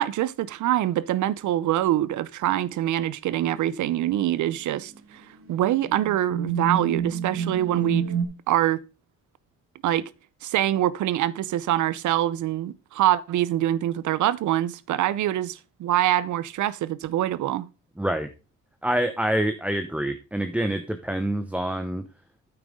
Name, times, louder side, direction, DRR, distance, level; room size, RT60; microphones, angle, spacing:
voice 1, 0.0-5.2 5.5-8.0 8.5-8.8 9.8-10.1 10.4-17.7, right 13 dB, 75° right, 0.7 m, -24 dB
sound 1, 3.7-4.0 4.7-4.8 5.6-8.2, right 7 dB, 45° right, 2.1 m, -28 dB
voice 2, 18.0-18.3 18.8-22.0, right 1 dB, 5° right, 0.9 m, -26 dB
9.0 x 8.9 x 3.7 m
cardioid pair, 90°, 30 cm